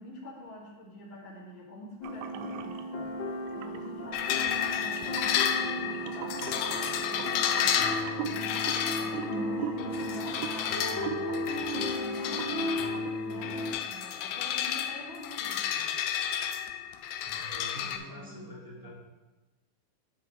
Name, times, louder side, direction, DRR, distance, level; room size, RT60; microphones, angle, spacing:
voice 1, 0.0-8.6 9.0-15.8 17.8-18.9, equal, 25° left, -4 dB, 1.7 m, -45 dB
sound 1, 2.0-13.7, left 1 dB, 45° left, 1.7 m, -35 dB
sound 2, 2.0-2.8 3.5-3.9 4.4-11.9 12.2-12.6 12.9-13.2, right 10 dB, 80° right, 1.8 m, -41 dB
sound 3, 4.1-18.0, left 9 dB, 80° left, 2.0 m, -32 dB
voice 2, 17.2-18.9, equal, 25° right, -5 dB, 0.4 m, -46 dB
9.9 x 7.7 x 3.2 m, 1.1 s
omnidirectional pair, 3.5 m